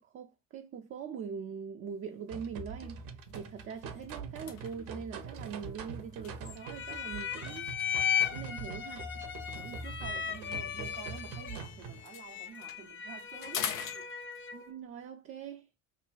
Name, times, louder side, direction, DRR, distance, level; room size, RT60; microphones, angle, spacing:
voice 1, 0.0-3.0 3.3-7.7 8.3-9.1 14.5-15.7, right 7 dB, 35° right, 0.5 m, -42 dB
sound 1, 2.0-2.3 2.7-2.9 3.2-7.1 8.0-11.6 11.9-14.7, left 8 dB, 90° left, 0.6 m, -45 dB
sound 2, 2.3-12.0, right 5 dB, 55° right, 0.8 m, -44 dB
sound 3, 6.6-14.7, left 8 dB, 30° left, 0.6 m, -36 dB
voice 2, 9.5-14.1, right 8 dB, 85° right, 0.9 m, -49 dB
5.4 x 2.2 x 2.4 m
hypercardioid pair, 65°, 40 cm